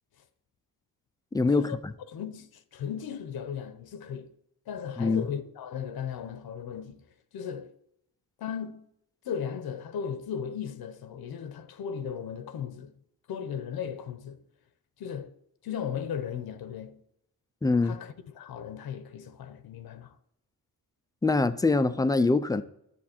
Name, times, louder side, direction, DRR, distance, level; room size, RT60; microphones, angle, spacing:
voice 1, 1.3-1.9 5.0-5.3 17.6-18.0 21.2-22.6, left 3 dB, 10° left, 0.3 m, -24 dB
voice 2, 2.1-4.3 4.7-7.0 7.3-7.7 8.4-8.9 9.2-12.9 13.3-14.4 15.0-15.3 15.6-17.0 17.8-20.1, left 8 dB, 70° left, 0.8 m, -36 dB
11.0 x 7.2 x 4.3 m
wide cardioid pair, 165°, 38 cm